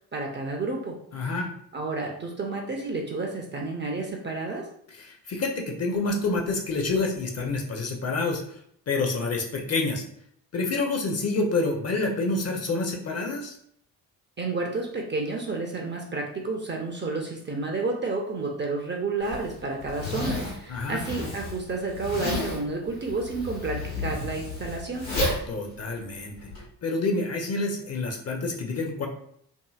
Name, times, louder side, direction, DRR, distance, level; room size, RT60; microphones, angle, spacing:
voice 1, 0.1-1.0 1.7-4.7 14.4-25.1, right 3 dB, 25° right, 1 dB, 0.5 m, -30 dB
voice 2, 1.1-1.5 5.0-8.4 8.9-10.0 10.5-13.6 20.7-21.0 25.5-26.3 26.8-29.1, left 3 dB, 30° left, 1 dB, 0.6 m, -28 dB
Zipper (clothing), 19.2-26.6, left 2 dB, 90° left, 1.1 m, -32 dB
2.7 x 2.7 x 2.3 m, 0.67 s
figure-of-eight pair, 45°, 49 cm